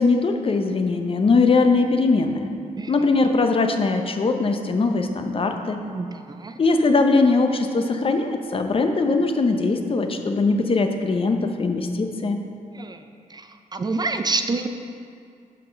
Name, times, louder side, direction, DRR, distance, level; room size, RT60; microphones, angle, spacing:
voice 1, 0.0-2.5 2.9-5.8 6.6-12.4, left 3 dB, 40° left, 6 dB, 0.6 m, -21 dB
voice 2, 5.9-6.5 12.7-13.0 13.3-13.5 13.7-14.7, right 3 dB, 30° right, 7 dB, 0.4 m, -27 dB
5.7 x 5.5 x 5.1 m, 2.3 s
cardioid pair, 90°, 14 cm